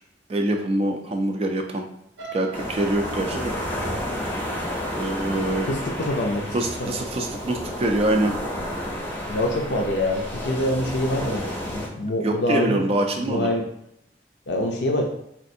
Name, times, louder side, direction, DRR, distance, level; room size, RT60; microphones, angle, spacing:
voice 1, 0.3-1.9 2.3-3.5 4.9-5.7 6.5-8.3 12.2-13.5, right 1 dB, 35° right, 3 dB, 0.3 m, -24 dB
sound 1, 2.2-6.1 6.6-6.9 7.3-7.4, right 3 dB, 80° right, 0.6 m, -43 dB
sound 2, 2.5-11.9, equal, 10° left, 0.6 m, -31 dB
voice 2, 5.6-6.9 9.3-13.0 13.3-13.6 14.5-15.0, left 1 dB, 70° left, 2 dB, 0.5 m, -25 dB
4.3 x 2.4 x 2.6 m, 0.80 s
head